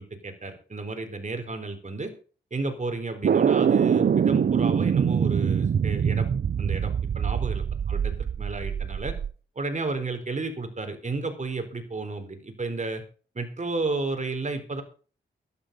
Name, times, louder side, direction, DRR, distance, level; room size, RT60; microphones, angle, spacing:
voice 1, 0.0-2.1 2.5-6.3 6.6-7.6 7.9-9.1 9.6-13.0 13.3-14.8, right 3 dB, 35° right, 7 dB, 4.1 m, -32 dB
sound 1, 3.2-9.3, right 7 dB, 55° right, 0.6 m, -24 dB
12.0 x 11.0 x 5.4 m, 0.39 s
cardioid pair, 70°, 20 cm